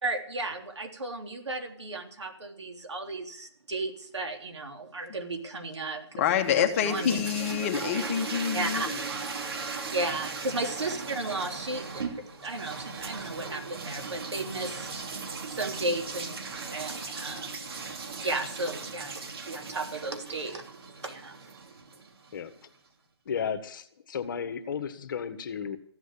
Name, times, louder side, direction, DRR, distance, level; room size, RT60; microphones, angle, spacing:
voice 1, 0.0-7.2 8.5-8.9 9.9-15.0 15.5-16.4 16.7-17.6 18.2-20.6 21.0-21.6, right 2 dB, 85° right, 4 dB, 3.5 m, -34 dB
voice 2, 6.2-8.8, left 9 dB, 30° left, 6 dB, 1.5 m, -27 dB
sound 1, 6.4-22.4, right 4 dB, 60° right, 2.8 m, -38 dB
voice 3, 23.2-25.8, left 7 dB, 50° left, 10 dB, 1.6 m, -34 dB
15.0 x 8.1 x 8.4 m, 0.63 s
hypercardioid pair, 155°, 14 cm